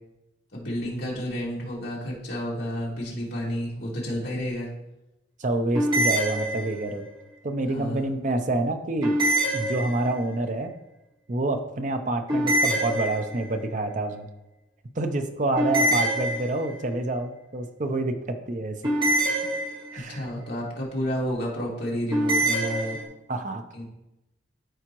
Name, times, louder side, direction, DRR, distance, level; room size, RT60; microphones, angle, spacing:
voice 1, 0.5-4.7 7.7-8.2 19.9-23.0 23.7-23.8, equal, 60° left, -5 dB, 2.4 m, -31 dB
voice 2, 5.4-7.1 7.4-9.2 9.5-10.7 11.3-14.3 15.0-18.9 19.9-20.3 23.3-23.6, right 2 dB, 40° right, 6 dB, 0.6 m, -27 dB
sound 1, 5.7-7.0 9.0-10.3 12.3-13.6 15.6-16.9 18.8-20.1 22.1-23.0, right 1 dB, 25° right, 1.9 m, -25 dB
12.5 x 4.9 x 3.0 m, 0.93 s
head